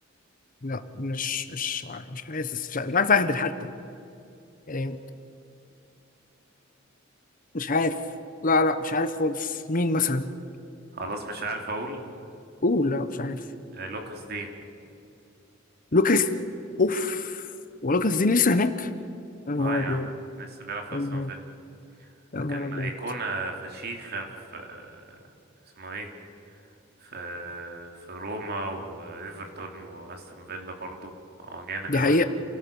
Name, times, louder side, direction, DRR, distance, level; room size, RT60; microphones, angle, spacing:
voice 1, 0.6-3.5 4.7-5.0 7.5-8.0 8.4-10.3 12.6-13.4 15.9-16.3 16.8-17.4 17.8-18.9 19.5-20.1 20.9-21.3 22.3-22.9 31.9-32.2, left 3 dB, 45° left, 10 dB, 1.1 m, -25 dB
voice 2, 10.9-12.0 13.7-14.5 19.6-20.0 20.4-21.4 22.5-24.3 24.5-25.1 25.8-26.1 27.0-31.1 31.5-32.2, right 2 dB, 55° right, 3 dB, 3.2 m, -35 dB
28.5 x 17.0 x 7.1 m, 2.7 s
head